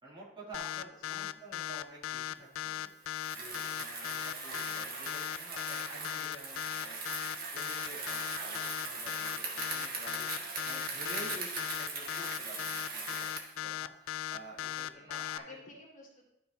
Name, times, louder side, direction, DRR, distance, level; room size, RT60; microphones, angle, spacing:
voice 1, 0.0-7.0 7.5-13.3 13.6-15.6, right 1 dB, 25° right, -7 dB, 2.5 m, -50 dB
sound 1, 0.5-15.4, left 12 dB, 85° left, 0.3 m, -37 dB
voice 2, 0.8-1.2 14.6-16.2, left 2 dB, 40° left, -2 dB, 1.9 m, -52 dB
Bicycle, 3.1-13.6, right 3 dB, 50° right, 1.7 m, -40 dB
12.5 x 5.7 x 2.7 m, 0.87 s
head